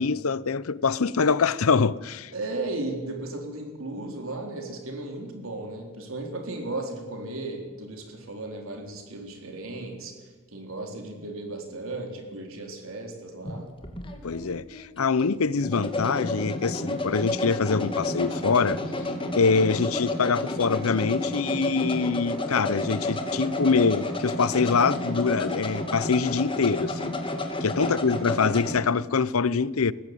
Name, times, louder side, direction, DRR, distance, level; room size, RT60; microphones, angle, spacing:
voice 1, 0.0-2.3 14.2-18.8 19.3-27.2 27.6-29.9, left 5 dB, 80° left, 0.7 m, -24 dB
voice 2, 2.3-10.1 10.5-13.7 27.8-28.0, right 2 dB, 70° right, 4.1 m, -35 dB
sound 1, 13.4-28.8, left 1 dB, 25° left, 2.5 m, -31 dB
20.0 x 15.0 x 9.2 m
head